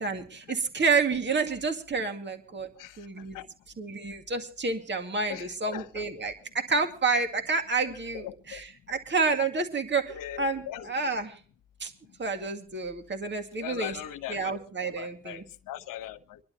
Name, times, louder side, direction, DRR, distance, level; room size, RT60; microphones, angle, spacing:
voice 1, 0.0-2.7 3.0-3.4 3.8-11.4 11.8-11.9 12.2-14.0 14.3-15.4, right 4 dB, 35° right, 2.1 m, -29 dB
voice 2, 5.3-6.0 7.8-8.6 10.1-10.9 13.6-16.4, left 12 dB, 80° left, 1.2 m, -40 dB
26.0 x 11.5 x 2.9 m
supercardioid pair, 55°, 32 cm